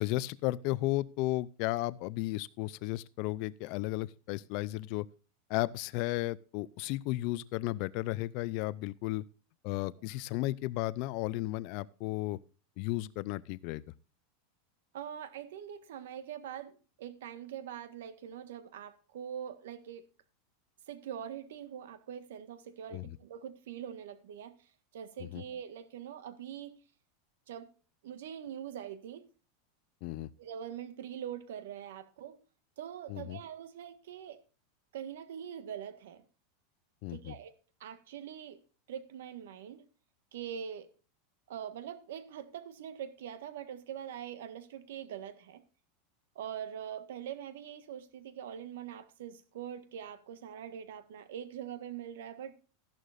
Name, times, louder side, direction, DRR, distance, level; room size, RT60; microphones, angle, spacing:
voice 1, 0.0-5.1 5.5-9.2 9.6-12.4 12.8-13.8 22.9-23.2 25.3-25.4 30.0-30.3 33.1-33.4 37.0-37.3, left 18 dB, 45° left, 0.5 m, -34 dB
voice 2, 14.9-20.0 20.9-26.7 27.5-27.7 28.0-29.2 30.4-32.4 32.8-34.4 34.9-36.2 37.1-37.5 37.8-38.6 38.9-39.8 40.3-40.9 41.5-45.6 46.3-52.5, right 9 dB, 85° right, 1.5 m, -43 dB
14.0 x 11.5 x 2.5 m
supercardioid pair, 170°, 0 cm